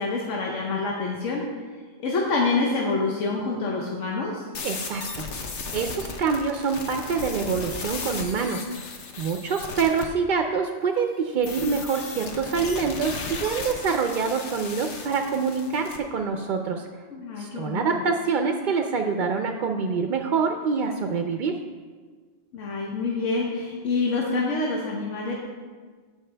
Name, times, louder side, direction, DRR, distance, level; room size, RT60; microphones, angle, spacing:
voice 1, 0.0-1.4 2.0-4.4 17.1-18.0 22.5-25.3, left 3 dB, 90° left, -2 dB, 1.2 m, -27 dB
sound 1, 4.5-10.1 11.4-16.0, left 4 dB, 70° left, 1.1 m, -36 dB
voice 2, 4.6-8.7 9.2-16.9 17.4-21.6, right 5 dB, 60° right, 5 dB, 0.5 m, -26 dB
13.5 x 4.9 x 3.4 m, 1.5 s
omnidirectional pair, 1.2 m